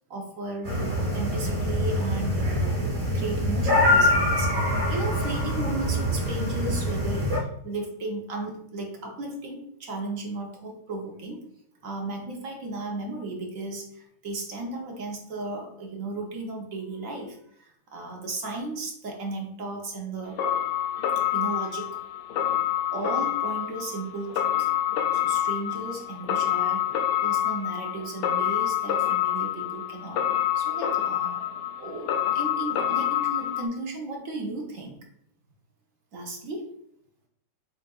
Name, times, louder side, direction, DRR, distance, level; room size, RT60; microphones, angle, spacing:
voice 1, 0.1-2.8 3.1-11.4 11.8-20.4 21.3-22.0 22.9-24.7 25.1-26.9 27.2-34.9 36.1-36.7, right 2 dB, 55° right, 0 dB, 1.1 m, -35 dB
sound 1, 0.6-7.4, left 1 dB, 30° right, 1.3 m, -24 dB
sound 2, 20.4-33.7, left 11 dB, 80° left, 1.2 m, -27 dB
7.3 x 2.5 x 2.3 m, 0.71 s
omnidirectional pair, 1.9 m